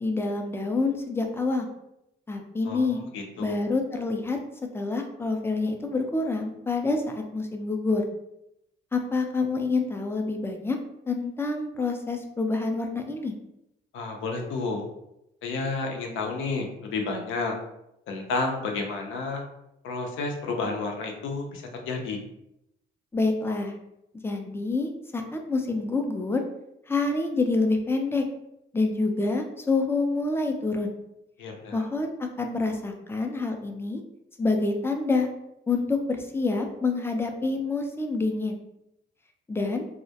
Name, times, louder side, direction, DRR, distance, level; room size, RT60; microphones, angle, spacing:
voice 1, 0.0-1.7 2.3-3.0 3.4-4.4 4.7-8.0 8.9-10.8 11.1-13.3 23.1-23.8 24.2-26.4 26.9-28.2 28.7-30.9 31.7-34.0 34.4-35.3 35.7-38.6 39.5-39.9, left 3 dB, 10° left, 4 dB, 0.3 m, -27 dB
voice 2, 3.1-3.5 13.9-14.8 15.4-17.5 18.1-19.4 19.8-22.2 31.4-31.8, left 3 dB, 85° left, 2 dB, 0.5 m, -31 dB
2.2 x 2.0 x 2.7 m, 0.83 s
cardioid pair, 90°, 20 cm